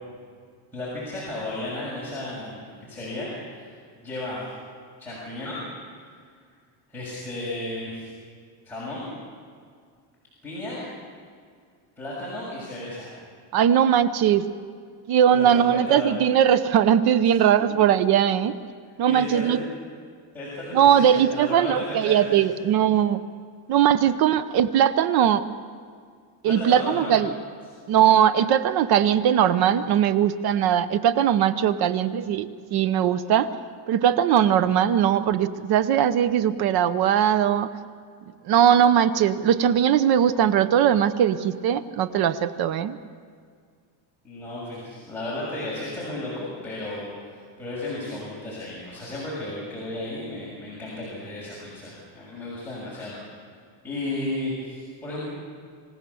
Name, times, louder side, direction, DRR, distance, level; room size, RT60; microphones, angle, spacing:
voice 1, 0.7-2.6 2.9-4.5 5.0-5.6 6.9-8.1 8.7-9.1 10.4-10.8 12.0-13.1 15.3-16.1 19.1-19.7 20.3-22.3 26.4-27.2 44.2-53.2 53.8-55.2, left 2 dB, 5° left, -8 dB, 6.7 m, -34 dB
voice 2, 13.5-14.4 15.1-18.6 19.0-19.6 20.7-23.2 23.7-25.4 26.4-27.3 27.9-33.5 33.9-37.7 38.4-43.0, right 9 dB, 50° right, 13 dB, 0.9 m, -20 dB
27.0 x 17.0 x 7.1 m, 2.1 s
cardioid pair, 150°, 47 cm